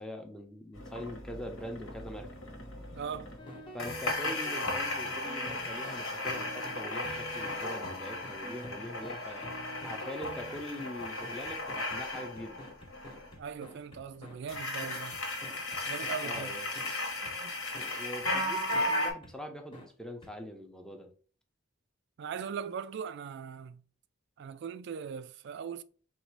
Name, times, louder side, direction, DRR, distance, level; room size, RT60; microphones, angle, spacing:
voice 1, 0.0-2.3 3.7-9.5 9.8-12.6 16.2-16.7 17.8-21.1, equal, 5° left, 0.6 m, -43 dB
sound 1, 0.7-3.4 3.8-13.3 14.5-19.1, left 1 dB, 80° left, 1.1 m, -36 dB
voice 2, 2.9-3.3 13.4-15.2 15.9-16.5 17.4-17.5 22.2-23.8 24.4-25.8, right 6 dB, 60° right, 0.3 m, -39 dB
sound 2, 3.4-16.4 16.7-16.9 17.2-17.3 17.7-17.9 18.2-18.3 18.7-18.9 19.2-19.3 19.7-19.9 20.2-20.3, equal, 25° left, 0.9 m, -46 dB
3.9 x 2.4 x 4.6 m
head